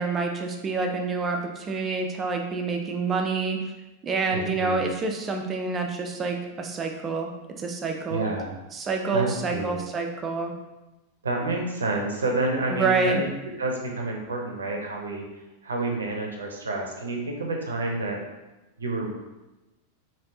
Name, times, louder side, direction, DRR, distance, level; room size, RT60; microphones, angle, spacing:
voice 1, 0.0-3.6 4.0-7.3 7.6-8.3 8.7-10.5 12.7-13.2, right 4 dB, 25° right, 3 dB, 0.4 m, -27 dB
voice 2, 4.3-4.9 8.1-8.6 9.1-9.8 11.2-13.3 13.6-15.2 15.6-18.2 18.8-19.1, right 2 dB, 70° right, 1 dB, 0.6 m, -29 dB
3.3 x 2.6 x 2.7 m, 1.0 s
figure-of-eight pair, 90°, 0 cm